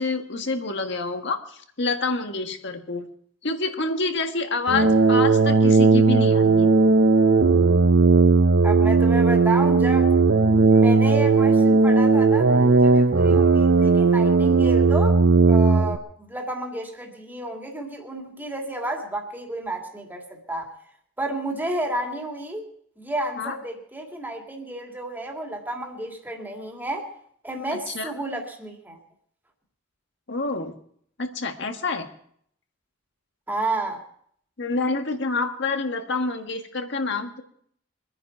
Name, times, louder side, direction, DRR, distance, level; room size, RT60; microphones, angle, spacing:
voice 1, 0.0-3.1 3.4-6.7 23.4-23.5 27.7-28.1 30.3-30.7 31.2-32.1 34.6-37.4, left 3 dB, 65° left, 5 dB, 1.7 m, -27 dB
sound 1, 4.7-16.0, right 4 dB, 65° right, 0.7 m, -17 dB
voice 2, 8.6-10.1 10.6-15.2 15.5-20.7 21.2-22.6 23.0-27.1 27.4-29.0 33.5-34.0, right 1 dB, 10° right, 1 dB, 2.5 m, -31 dB
24.5 x 10.0 x 4.6 m, 0.64 s
head